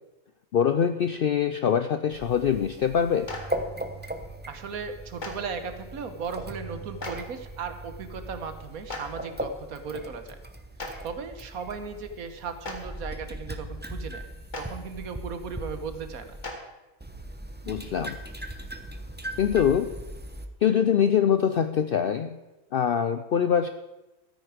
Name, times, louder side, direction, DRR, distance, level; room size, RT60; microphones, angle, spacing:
voice 1, 0.5-3.3 17.7-18.2 19.4-19.9 20.6-22.3 22.7-23.7, left 8 dB, 70° left, 10 dB, 0.5 m, -23 dB
sound 1, 2.1-16.4 17.0-20.5, right 1 dB, 10° right, 0.5 m, -39 dB
Clapping, 3.3-3.4 5.2-5.3 7.0-7.1 8.9-9.0 10.8-10.9 12.6-12.7 14.5-14.6 16.4-16.5, left 3 dB, 35° left, 1.7 m, -35 dB
voice 2, 4.5-10.4 11.0-14.3 14.6-16.3, right 5 dB, 80° right, 8 dB, 1.5 m, -36 dB
13.5 x 9.2 x 5.0 m, 1.1 s
omnidirectional pair, 1.5 m